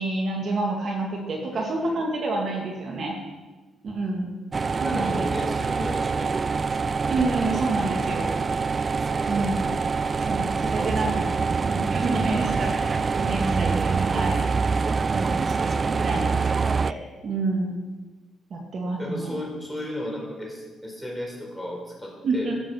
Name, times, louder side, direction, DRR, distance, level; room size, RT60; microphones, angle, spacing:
voice 1, 0.0-3.2 3.8-4.3 4.8-5.3 7.1-8.3 9.3-9.6 10.2-11.2 11.6-14.5 15.1-17.0 17.2-17.8 18.5-19.4 22.2-22.5, right 2 dB, 50° right, 0 dB, 2.1 m, -28 dB
voice 2, 1.5-2.0 4.7-6.6 9.0-9.5 10.7-11.4 19.0-22.6, left 1 dB, ahead, -1 dB, 4.4 m, -35 dB
sound 1, 4.5-16.9, right 4 dB, 35° right, 0.3 m, -25 dB
12.5 x 7.7 x 6.2 m, 1.3 s
cardioid pair, 90°, 0 cm